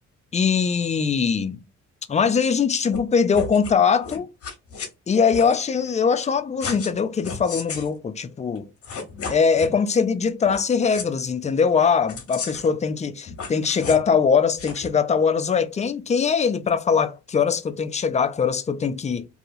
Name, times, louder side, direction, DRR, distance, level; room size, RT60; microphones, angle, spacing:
voice 1, 0.3-1.6 2.1-4.3 5.1-8.7 9.3-19.3, left 6 dB, 25° left, 0.4 m, -21 dB
sound 1, 2.9-3.0 3.3-3.7 4.0-4.9 5.3-5.6 6.6-7.0 7.2-7.9 8.6-8.7 8.8-9.7 10.4-10.6 10.9-11.1 12.1-12.7 13.3-14.1 14.6-14.9, left 5 dB, 50° left, 1.1 m, -33 dB
2.8 x 2.7 x 2.5 m
cardioid pair, 90°, 30 cm